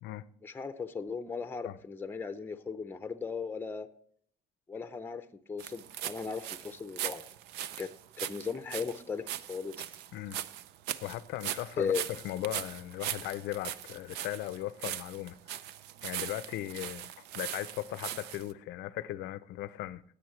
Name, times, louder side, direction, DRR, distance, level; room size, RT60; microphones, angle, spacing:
voice 1, 0.4-3.9 4.7-7.2 7.8-7.9 8.2-9.9 11.8-12.0, left 5 dB, 10° left, 0.6 m, -37 dB
sound 1, 5.6-18.5, right 11 dB, 85° right, 0.5 m, -40 dB
voice 2, 11.0-15.7 16.0-20.0, left 14 dB, 80° left, 0.5 m, -38 dB
16.5 x 8.0 x 3.2 m
cardioid pair, 110°, 17 cm